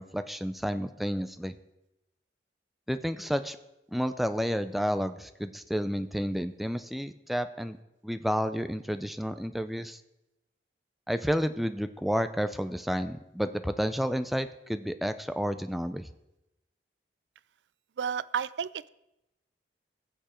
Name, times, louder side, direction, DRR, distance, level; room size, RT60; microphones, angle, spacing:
voice 1, 0.0-1.5 2.9-3.6 3.9-7.8 8.0-10.0 11.1-16.1, equal, ahead, 10 dB, 0.5 m, -31 dB
voice 2, 18.0-18.9, right 7 dB, 80° right, 18 dB, 0.4 m, -31 dB
20.5 x 7.0 x 4.4 m, 0.91 s
head